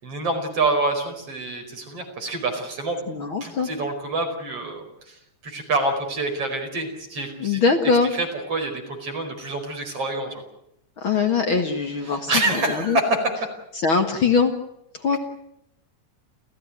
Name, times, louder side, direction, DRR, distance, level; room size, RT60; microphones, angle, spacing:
voice 1, 0.0-3.0 3.4-5.2 5.4-7.6 8.1-10.4 12.1-13.5 15.1-15.2, right 2 dB, 50° right, 3 dB, 6.0 m, -26 dB
voice 2, 3.1-3.7 7.4-8.1 11.0-13.0 13.8-14.5 14.9-15.2, left 5 dB, 50° left, 6 dB, 2.3 m, -22 dB
29.5 x 15.5 x 9.6 m, 0.79 s
omnidirectional pair, 3.3 m